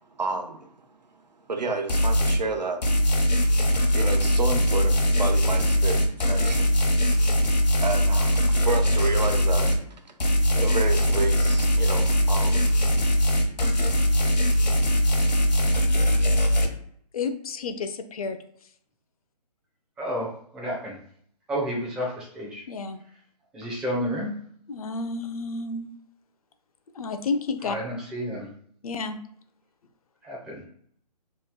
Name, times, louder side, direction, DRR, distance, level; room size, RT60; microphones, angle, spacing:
voice 1, 0.1-0.7 1.5-6.8 7.3-7.4 7.8-10.1 10.5-12.7, right 3 dB, 85° right, 5 dB, 0.7 m, -31 dB
sound 1, 1.9-2.4 2.8-9.8 10.2-16.7, equal, 80° left, 0.8 m, -21 dB
voice 2, 17.1-18.4 22.7-23.0 24.7-25.9 26.9-27.8 28.8-29.2, left 4 dB, 60° left, 9 dB, 0.5 m, -30 dB
voice 3, 20.0-20.3 20.5-21.0 21.5-22.6 23.5-24.3 27.6-28.5 30.2-30.6, equal, 5° right, -5 dB, 0.4 m, -30 dB
3.0 x 2.2 x 3.6 m, 0.64 s
figure-of-eight pair, 140°, 21 cm